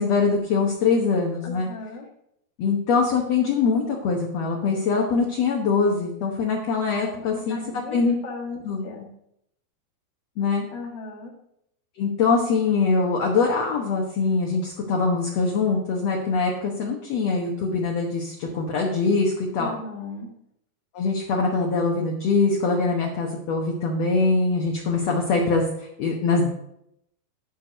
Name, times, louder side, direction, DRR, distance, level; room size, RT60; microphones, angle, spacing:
voice 1, 0.0-1.7 2.6-7.6 7.9-8.2 8.7-8.8 10.4-10.7 12.0-19.7 20.9-26.5, left 4 dB, 65° left, 0 dB, 1.6 m, -23 dB
voice 2, 1.4-2.1 7.1-9.1 10.7-11.3 19.6-20.3, left 3 dB, 40° left, -1 dB, 1.7 m, -36 dB
11.0 x 4.8 x 6.7 m, 0.76 s
omnidirectional pair, 4.6 m